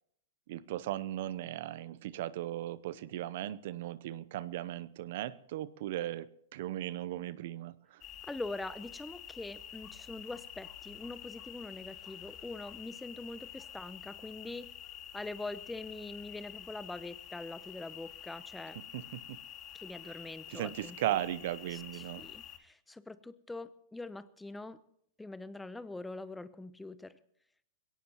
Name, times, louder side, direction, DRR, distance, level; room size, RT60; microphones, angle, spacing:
voice 1, 0.5-8.0 18.9-19.2 20.0-20.1 20.5-22.2, right 13 dB, 60° right, 18 dB, 0.7 m, -37 dB
sound 1, 8.0-22.6, left 10 dB, 35° left, 2.0 m, -48 dB
voice 2, 8.2-14.7 15.1-18.8 19.7-21.1 21.7-24.8 25.2-27.1, left 2 dB, 5° left, 16 dB, 0.7 m, -43 dB
21.5 x 17.5 x 3.0 m, 0.69 s
hypercardioid pair, 110°, 0 cm